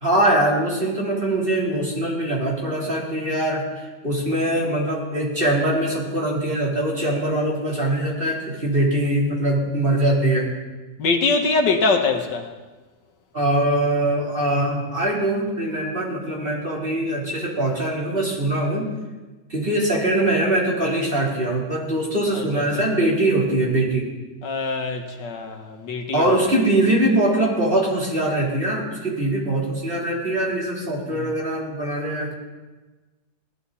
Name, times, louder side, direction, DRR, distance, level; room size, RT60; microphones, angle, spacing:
voice 1, 0.0-3.6 4.0-10.5 13.3-18.9 19.5-24.0 26.1-32.3, right 1 dB, 30° right, -4 dB, 4.0 m, -22 dB
voice 2, 11.0-12.5 22.3-22.9 24.4-26.4 31.1-31.3, left 3 dB, 85° left, 4 dB, 2.0 m, -23 dB
19.0 x 13.0 x 4.2 m, 1.2 s
omnidirectional pair, 1.9 m